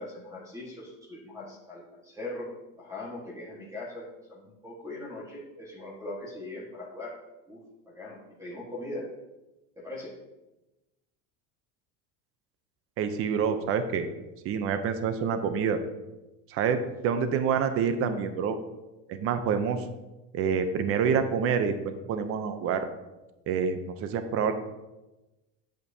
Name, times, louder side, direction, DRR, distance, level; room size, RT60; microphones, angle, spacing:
voice 1, 0.0-2.5 2.8-7.1 7.5-9.0 9.8-10.1, left 2 dB, 10° right, -4 dB, 1.6 m, -40 dB
voice 2, 13.0-14.1 14.4-15.8 16.5-18.6 19.1-19.8 20.3-22.8 23.5-24.5, right 6 dB, 40° right, 9 dB, 0.7 m, -27 dB
9.1 x 8.1 x 2.8 m, 1.0 s
cardioid pair, 150°, 36 cm